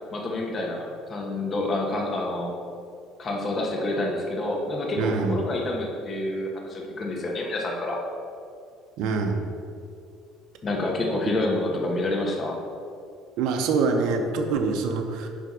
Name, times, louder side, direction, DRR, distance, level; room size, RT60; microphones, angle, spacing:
voice 1, 0.1-2.5 3.2-8.0 10.6-12.6, left 2 dB, 30° left, 0 dB, 1.4 m, -28 dB
voice 2, 5.0-5.4 9.0-9.4 13.4-15.3, right 4 dB, 70° right, 4 dB, 0.7 m, -25 dB
9.7 x 3.5 x 6.2 m, 2.4 s
cardioid pair, 120°, 0 cm